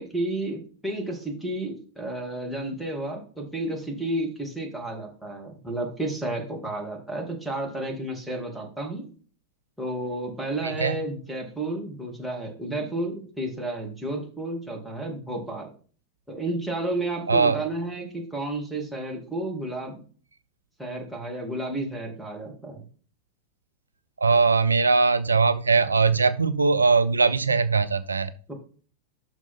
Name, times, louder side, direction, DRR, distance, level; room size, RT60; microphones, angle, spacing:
voice 1, 0.0-9.0 9.8-15.7 16.3-20.0 20.8-22.8 28.5-28.6, right 1 dB, ahead, 1 dB, 2.5 m, -31 dB
voice 2, 10.6-11.0 17.3-17.6 24.2-28.3, right 4 dB, 75° right, 13 dB, 0.4 m, -21 dB
6.1 x 5.3 x 5.7 m, 0.41 s
figure-of-eight pair, 90°, 0 cm